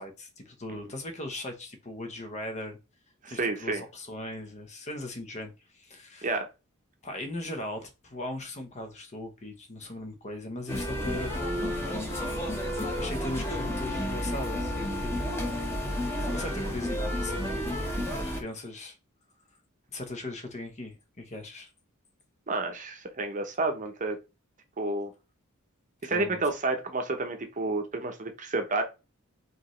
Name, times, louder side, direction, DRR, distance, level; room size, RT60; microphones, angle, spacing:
voice 1, 0.0-2.8 3.3-6.3 7.0-11.9 13.0-15.8 16.3-17.6 17.9-19.0 19.9-21.7 26.0-26.4, left 2 dB, 35° left, 0.9 m, -39 dB
voice 2, 3.2-3.8 6.2-6.5 22.5-24.2 24.8-25.1 26.0-28.8, right 3 dB, 35° right, 0.8 m, -30 dB
sound 1, 10.7-18.4, equal, 10° left, 1.1 m, -31 dB
5.0 x 3.1 x 3.1 m
head